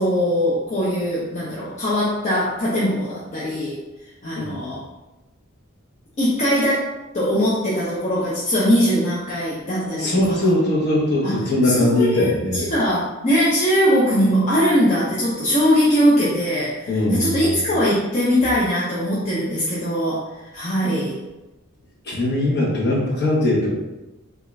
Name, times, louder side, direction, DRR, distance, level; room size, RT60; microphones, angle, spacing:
voice 1, 0.0-3.8 4.2-4.8 6.2-10.5 11.2-21.2, equal, 35° left, -7 dB, 0.6 m, -21 dB
voice 2, 10.0-12.7 16.9-17.6 22.0-23.7, left 1 dB, 50° left, -4 dB, 1.0 m, -20 dB
3.6 x 2.3 x 3.1 m, 1.0 s
head